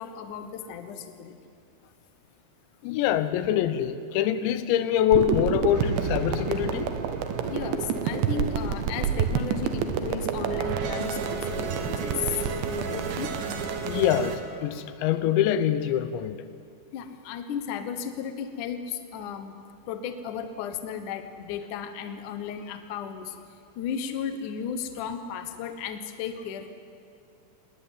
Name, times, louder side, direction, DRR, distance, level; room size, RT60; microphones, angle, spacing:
voice 1, 0.0-1.4 1.8-1.9 7.4-12.4 12.7-13.3 16.9-19.6 19.9-23.4 23.8-26.7, left 7 dB, 65° left, 8 dB, 2.0 m, -34 dB
voice 2, 2.8-6.9 13.8-16.4, left 10 dB, 80° left, 12 dB, 3.1 m, -25 dB
sound 1, 5.1-14.0, right 8 dB, 85° right, 3.5 m, -30 dB
sound 2, 5.7-14.4, right 5 dB, 60° right, 2.4 m, -34 dB
20.0 x 20.0 x 9.1 m, 2.4 s
omnidirectional pair, 5.2 m